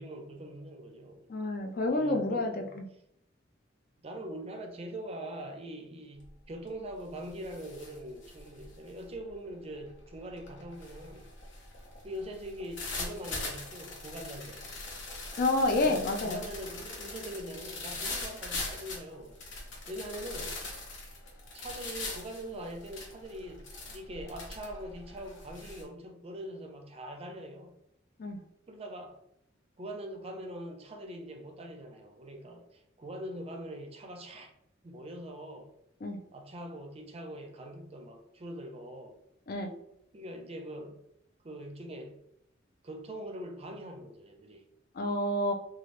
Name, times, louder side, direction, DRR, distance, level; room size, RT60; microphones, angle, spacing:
voice 1, 0.0-1.3 1.9-2.8 4.0-11.3 12.0-14.7 15.8-20.6 21.5-27.8 28.7-29.2 29.8-34.5 34.8-35.7 36.3-39.2 40.1-41.0 41.4-42.2 42.8-44.7, right 1 dB, 30° right, 0.5 m, -43 dB
voice 2, 1.3-2.8 15.4-16.4 28.2-28.4 36.0-36.2 39.5-39.7 44.9-45.5, left 2 dB, 50° left, 0.4 m, -29 dB
sound 1, 6.2-6.5 6.9-25.8, left 2 dB, 70° left, 0.8 m, -42 dB
3.0 x 2.4 x 3.1 m
head